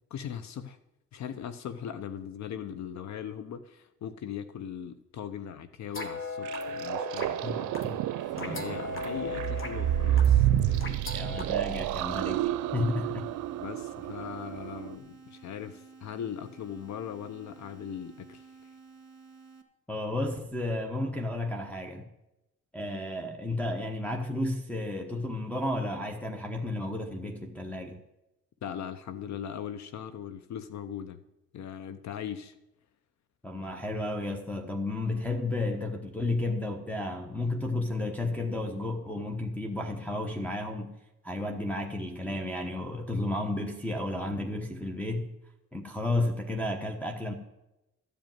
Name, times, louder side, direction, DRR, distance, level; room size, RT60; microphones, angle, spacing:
voice 1, 0.1-0.8 1.1-8.0 8.4-11.0 13.6-18.7 28.6-31.2 31.5-32.5, left 8 dB, 65° left, 12 dB, 0.8 m, -39 dB
sound 1, 5.9-11.5, left 3 dB, 45° left, 1.7 m, -39 dB
sound 2, 6.4-15.0, right 12 dB, 80° right, 0.5 m, -29 dB
sound 3, 8.2-19.6, right 5 dB, 40° right, 2.0 m, -53 dB
voice 2, 11.1-13.3 19.9-22.0 22.7-28.0 33.4-40.9 41.2-45.3 45.7-47.3, left 2 dB, 5° left, 0 dB, 1.1 m, -32 dB
13.0 x 5.3 x 9.2 m, 0.92 s
cardioid pair, 90°, 30 cm